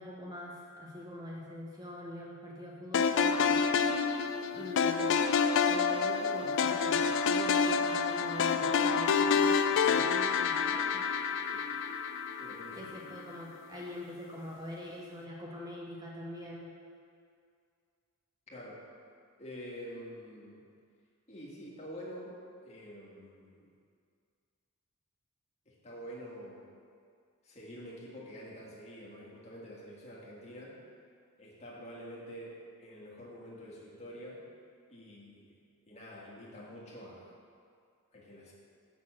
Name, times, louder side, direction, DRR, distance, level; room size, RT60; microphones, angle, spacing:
voice 1, 0.0-3.6 4.5-5.2 5.7-11.2 12.7-16.7, left 1 dB, 20° right, -3 dB, 1.0 m, -44 dB
sound 1, 2.9-13.2, left 6 dB, 60° left, 0.4 m, -28 dB
voice 2, 12.4-13.0 18.5-18.8 19.4-20.6 21.3-23.7 25.6-26.7 27.4-30.8 31.4-34.4 34.9-35.6 35.9-37.4 38.1-38.5, equal, 30° left, -5 dB, 1.7 m, -47 dB
7.0 x 6.0 x 6.2 m, 2.2 s
head